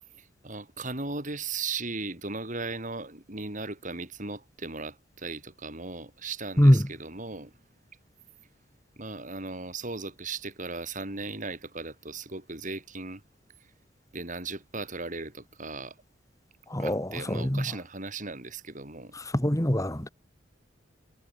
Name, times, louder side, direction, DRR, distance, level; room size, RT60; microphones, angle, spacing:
voice 1, 0.2-7.5 9.0-13.2 13.6-13.7 14.1-16.0 16.8-19.1, right 3 dB, 40° right, 4.3 m, -37 dB
voice 2, 6.6-6.9 16.7-17.7 19.3-20.1, equal, 15° left, 2.2 m, -23 dB
head